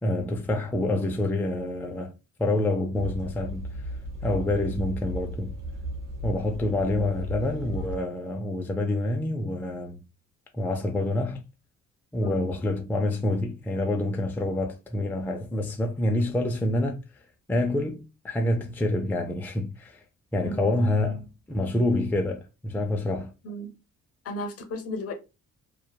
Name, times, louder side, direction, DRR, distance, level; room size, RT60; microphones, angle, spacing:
voice 1, 0.0-2.1 2.4-3.7 4.2-5.5 6.2-10.0 10.5-11.4 12.1-17.0 17.5-20.0 20.3-23.3, left 1 dB, 5° left, 0.4 m, -27 dB
sound 1, 2.9-8.0, equal, 85° right, 0.9 m, -35 dB
voice 2, 4.4-4.8 12.2-12.5 20.4-20.7 23.4-23.7 24.2-25.1, left 1 dB, 50° left, 0.7 m, -35 dB
2.8 x 2.2 x 2.2 m
cardioid pair, 90°, 30 cm